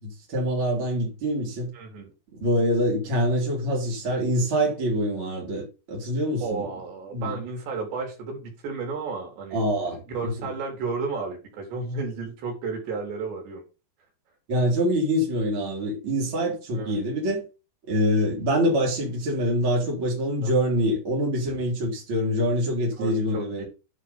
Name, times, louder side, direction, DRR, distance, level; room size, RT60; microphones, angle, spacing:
voice 1, 0.0-1.7 2.4-6.7 7.1-7.4 9.5-10.3 14.5-17.4 17.9-23.6, equal, 30° right, 4.2 m, -25 dB
voice 2, 1.7-2.1 6.4-13.6 16.7-17.0 20.4-20.5 23.0-23.6, right 4 dB, 75° right, 5.0 m, -33 dB
10.0 x 5.1 x 5.5 m
omnidirectional pair, 5.0 m